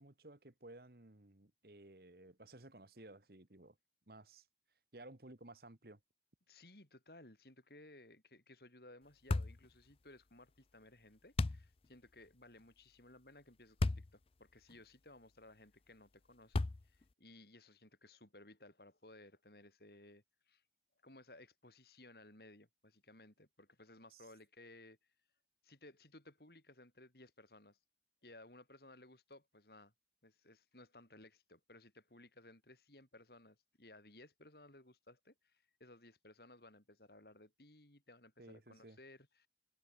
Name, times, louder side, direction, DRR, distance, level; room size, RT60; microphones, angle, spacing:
voice 1, 0.0-3.7 4.1-4.4 4.9-6.0 24.1-24.2 38.4-39.0, right 2 dB, 55° right, 1.8 m, -56 dB
voice 2, 6.5-20.6 21.0-25.0 25.6-27.8 28.2-29.9 30.2-39.5, left 2 dB, 60° left, 4.9 m, -60 dB
sound 1, 9.3-9.6 11.4-11.7 13.8-14.1 14.7-14.8 16.5-17.0, left 2 dB, 30° left, 0.4 m, -34 dB
head